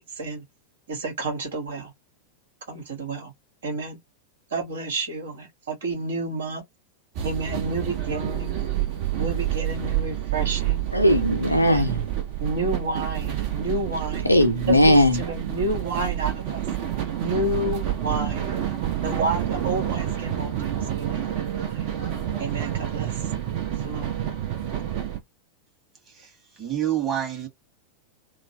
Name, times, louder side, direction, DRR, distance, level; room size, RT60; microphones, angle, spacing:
voice 1, 0.9-1.9 2.7-3.3 3.6-4.0 4.5-6.6 7.2-8.6 9.2-10.9 11.7-12.0 12.4-14.3 14.7-16.6 17.2-18.6 19.0-21.8 22.4-23.1 23.8-24.1, right 2 dB, 65° right, 1.5 m, -30 dB
sound 1, 7.1-25.2, right 11 dB, 45° right, 1.0 m, -28 dB
voice 2, 10.9-12.1 14.2-15.2, left 1 dB, 90° left, 0.7 m, -18 dB
voice 3, 26.1-27.5, right 11 dB, 25° right, 1.5 m, -28 dB
3.0 x 2.1 x 2.8 m
figure-of-eight pair, 90°, 0 cm